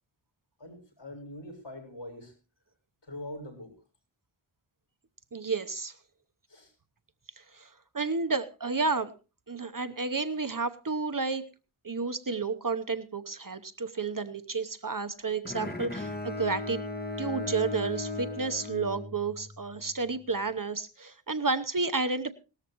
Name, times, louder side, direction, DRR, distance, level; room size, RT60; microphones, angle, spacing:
voice 1, 0.6-2.3 3.0-3.8 6.5-6.7, left 1 dB, 60° left, 1 dB, 7.4 m, -43 dB
voice 2, 5.3-5.9 7.4-7.7 7.9-9.1 9.5-11.4 11.8-16.8 17.2-22.3, right 4 dB, 40° right, 11 dB, 0.9 m, -31 dB
Bowed string instrument, 15.4-19.7, left 2 dB, 20° left, 1.8 m, -36 dB
19.0 x 13.5 x 3.0 m, 0.32 s
wide cardioid pair, 70°, 48 cm